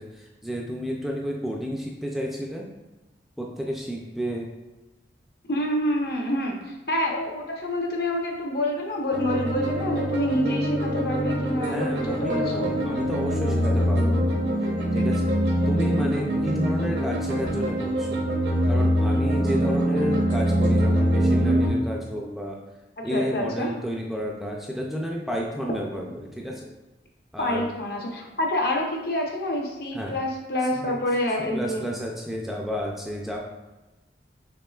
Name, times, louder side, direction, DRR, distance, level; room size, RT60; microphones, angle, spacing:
voice 1, 0.0-2.7 3.4-4.5 11.7-15.3 15.7-18.2 18.7-22.6 23.0-26.7 27.3-27.7 29.9-30.2 30.7-31.0 31.4-33.4, equal, ahead, -2 dB, 0.3 m, -31 dB
voice 2, 5.5-12.8 23.1-23.7 27.4-31.9, left 1 dB, 60° left, 0 dB, 0.8 m, -27 dB
sound 1, 9.1-21.7, equal, 80° right, 0.9 m, -24 dB
6.6 x 3.0 x 2.3 m, 1.1 s
head